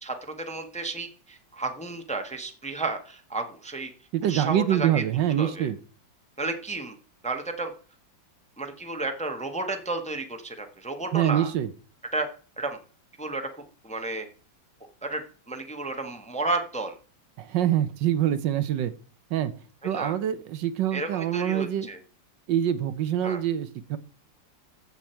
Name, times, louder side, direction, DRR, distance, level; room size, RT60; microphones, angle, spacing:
voice 1, 0.0-3.9 4.2-5.0 5.4-5.7 6.4-6.9 7.2-7.7 8.6-11.5 12.1-12.3 12.6-12.8 13.2-13.4 13.8-14.3 15.0-16.9 19.8-20.1 20.9-22.0 23.2-23.4, right 3 dB, 5° left, 5 dB, 1.0 m, -32 dB
voice 2, 4.1-5.8 11.1-11.7 17.4-18.9 19.3-19.5 19.8-21.9 22.5-24.0, right 11 dB, 75° right, 13 dB, 1.4 m, -25 dB
14.5 x 7.1 x 4.5 m, 0.41 s
omnidirectional pair, 2.1 m